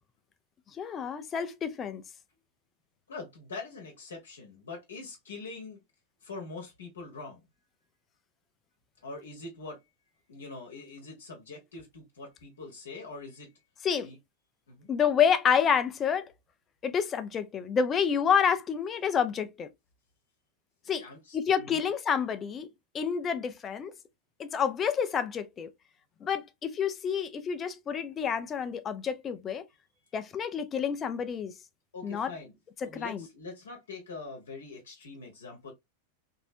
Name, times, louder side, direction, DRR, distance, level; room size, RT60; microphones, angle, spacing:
voice 1, 0.8-2.0 13.8-14.1 14.9-16.3 16.8-19.7 20.9-21.0 21.3-22.7 22.9-23.9 24.4-25.7 26.2-29.6 30.1-31.5 32.0-32.3 32.8-33.3, left 7 dB, 25° left, 0.5 m, -28 dB
voice 2, 3.1-5.8 6.2-7.4 9.0-9.8 10.3-13.5 14.0-14.2 14.7-14.9 21.0-21.8 31.9-32.5 32.8-35.7, left 3 dB, 65° left, 1.0 m, -43 dB
3.1 x 2.7 x 2.6 m
figure-of-eight pair, 90°, 0 cm